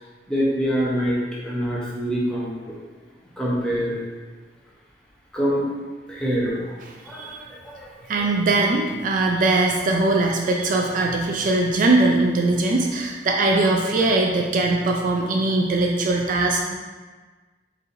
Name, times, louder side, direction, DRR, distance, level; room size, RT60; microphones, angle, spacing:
voice 1, 0.3-1.2 1.4-2.7 3.4-4.0 5.3-5.6 6.1-6.6 7.1-7.4 7.6-7.9, equal, 5° left, -6 dB, 0.7 m, -24 dB
voice 2, 8.1-16.7, right 2 dB, 50° right, 1 dB, 0.3 m, -21 dB
4.5 x 3.2 x 2.6 m, 1.4 s
head